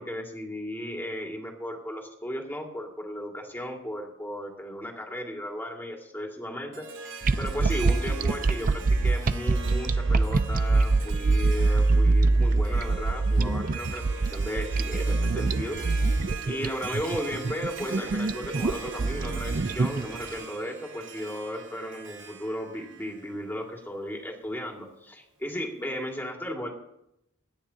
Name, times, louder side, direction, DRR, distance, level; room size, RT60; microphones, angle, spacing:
voice 1, 0.0-16.0 16.4-26.7, equal, 10° left, 0 dB, 2.3 m, -35 dB
Harp, 6.7-24.0, right 4 dB, 65° right, 1.5 m, -41 dB
sound 1, 7.2-20.3, right 3 dB, 45° right, 0.5 m, -24 dB
25.5 x 10.0 x 2.9 m, 0.81 s
head